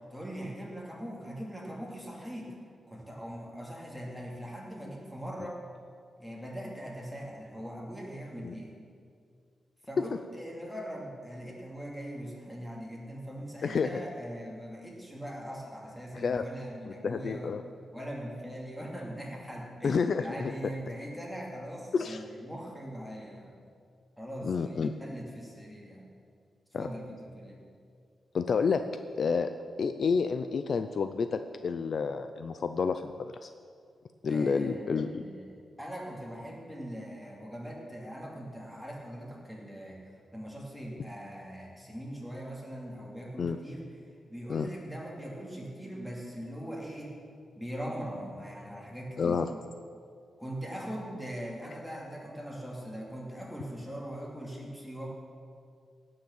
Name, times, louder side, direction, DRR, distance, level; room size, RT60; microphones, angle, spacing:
voice 1, 0.1-2.5 2.9-5.6 6.2-8.8 9.8-17.5 17.9-23.5 24.2-26.0 26.8-27.6 34.3-35.5 35.8-43.8 44.3-47.1 47.5-49.4 50.4-55.1, equal, ahead, -3 dB, 2.6 m, -41 dB
voice 2, 13.6-14.0 16.1-16.5 16.9-17.6 19.8-20.5 21.9-22.2 24.4-24.9 26.7-26.9 28.3-28.8 29.2-29.5 29.8-33.5 34.2-35.2 43.4-43.6 44.5-44.7 49.2-49.5, left 5 dB, 50° left, 9 dB, 0.4 m, -29 dB
17.0 x 6.5 x 7.2 m, 2.3 s
wide cardioid pair, 155°, 0 cm